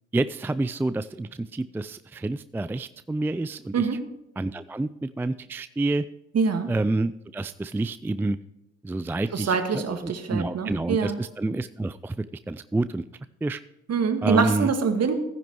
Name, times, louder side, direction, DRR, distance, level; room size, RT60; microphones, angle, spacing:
voice 1, 0.1-3.9 4.4-6.0 6.7-8.4 8.8-13.0 13.4-13.6 14.2-14.7, right 2 dB, 5° right, 14 dB, 0.4 m, -28 dB
voice 2, 3.7-4.1 6.3-6.7 9.3-11.2 13.9-15.1, right 5 dB, 45° right, 7 dB, 1.9 m, -24 dB
14.0 x 10.0 x 3.1 m, 0.89 s
hypercardioid pair, 50°, 34 cm